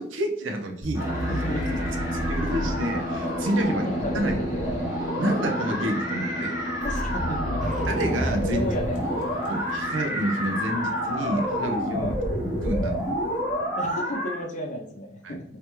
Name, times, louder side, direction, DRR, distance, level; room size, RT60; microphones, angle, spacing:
voice 1, 0.0-1.1 2.3-4.4 5.2-6.5 7.9-8.7 9.5-12.2 12.6-13.0 15.2-15.4, right 1 dB, 90° right, 4 dB, 0.6 m, -28 dB
sound 1, 0.8-3.8 6.8-10.2, equal, 75° left, 1.0 m, -33 dB
sound 2, 0.9-14.4, equal, 15° right, 1.0 m, -29 dB
voice 2, 1.1-2.3 3.6-4.9 5.3-5.4 6.8-7.6 8.4-9.3 11.9-12.2 13.8-15.4, left 1 dB, 40° left, 2 dB, 0.6 m, -34 dB
sound 3, 7.6-13.4, right 3 dB, 40° right, 0.4 m, -41 dB
3.3 x 2.8 x 3.0 m, 0.70 s
head